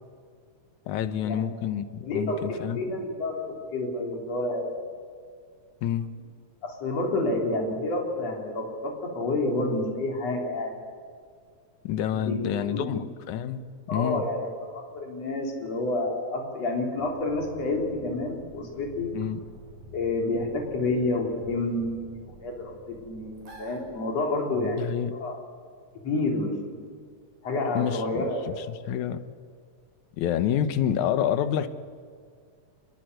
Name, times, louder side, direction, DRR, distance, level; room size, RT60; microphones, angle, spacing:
voice 1, 0.9-2.9 5.8-6.1 11.8-13.6 13.9-14.2 19.1-19.4 24.6-25.1 27.8-29.2 30.2-31.7, left 9 dB, 80° left, 12 dB, 2.4 m, -28 dB
voice 2, 2.0-4.8 6.6-10.8 12.1-13.0 13.9-19.1 19.9-22.0 22.4-22.7 23.0-25.4 26.0-26.8 27.4-28.5, left 2 dB, 55° left, 0 dB, 4.6 m, -29 dB
sound 1, 17.0-24.5, right 1 dB, 90° right, 5.7 m, -48 dB
24.0 x 21.5 x 7.9 m, 2.1 s
omnidirectional pair, 3.4 m